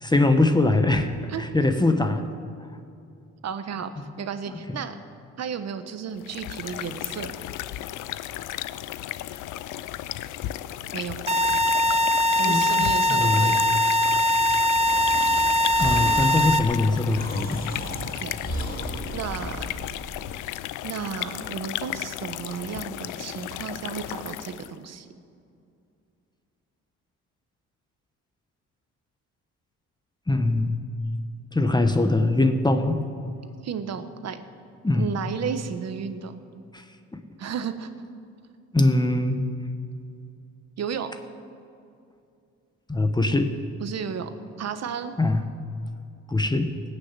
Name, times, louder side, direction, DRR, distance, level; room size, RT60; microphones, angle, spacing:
voice 1, 0.0-2.2 12.5-12.6 13.1-13.6 15.8-17.6 30.3-30.8 31.5-33.0 34.8-35.1 36.7-36.8 37.1-37.2 38.7-39.4 42.9-43.5 45.2-45.5 46.3-46.7, left 2 dB, 15° left, 7 dB, 1.1 m, -22 dB
voice 2, 3.4-3.9 4.2-5.0 5.4-7.3 10.9-11.2 12.4-13.6 17.6-17.9 18.1-18.3 19.1-20.0 20.8-25.1 33.6-34.4 34.9-36.3 37.4-37.9 40.8-41.2 43.8-44.3 44.6-45.1, right 7 dB, 60° right, 9 dB, 1.2 m, -33 dB
sound 1, 6.2-24.8, left 14 dB, 85° left, 0.5 m, -35 dB
sound 2, 11.3-16.6, left 1 dB, 20° right, 0.9 m, -21 dB
Breathing, 14.8-19.9, equal, 30° left, 2.5 m, -34 dB
18.5 x 6.8 x 8.4 m, 2.5 s
cardioid pair, 90°, 30 cm